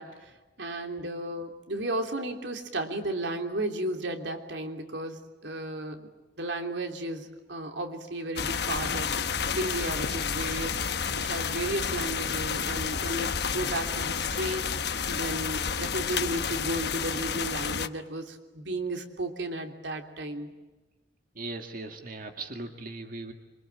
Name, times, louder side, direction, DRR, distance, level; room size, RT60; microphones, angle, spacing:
voice 1, 0.0-6.1 6.4-20.5, right 1 dB, 85° right, 5 dB, 3.2 m, -34 dB
sound 1, 8.4-17.9, left 6 dB, 65° left, 1.1 m, -30 dB
voice 2, 21.3-23.3, right 2 dB, 50° right, 5 dB, 2.0 m, -38 dB
27.0 x 25.0 x 8.9 m, 1.2 s
head